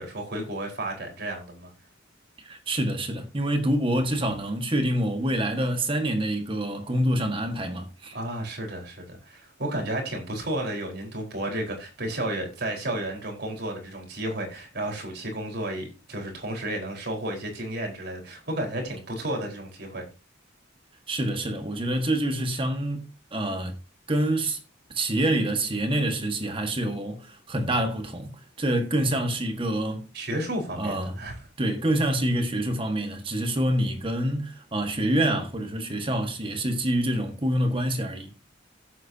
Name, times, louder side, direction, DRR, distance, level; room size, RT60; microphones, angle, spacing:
voice 1, 0.0-1.7 8.1-20.1 30.1-31.4, right 1 dB, 55° right, 4.3 m, -32 dB
voice 2, 2.4-8.2 21.1-23.8 24.1-24.6 24.9-30.1 30.8-31.2 31.6-38.3, right 1 dB, 25° right, 1.6 m, -26 dB
16.0 x 8.4 x 2.8 m
head